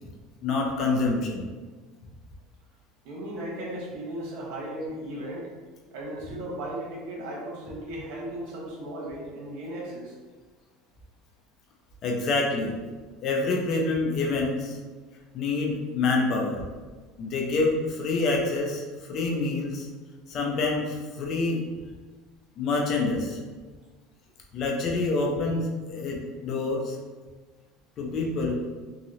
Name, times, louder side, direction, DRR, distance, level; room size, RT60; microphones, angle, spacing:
voice 1, 0.4-1.5 12.0-12.8 13.2-14.8 15.3-16.6 17.2-19.9 20.3-21.6 22.6-23.4 24.5-27.0 28.0-28.7, left 3 dB, 50° left, 0 dB, 0.6 m, -27 dB
voice 2, 3.0-5.5 5.9-10.2, right 1 dB, 70° right, -4 dB, 1.1 m, -36 dB
2.8 x 2.7 x 2.7 m, 1.4 s
supercardioid pair, 110°, 0 cm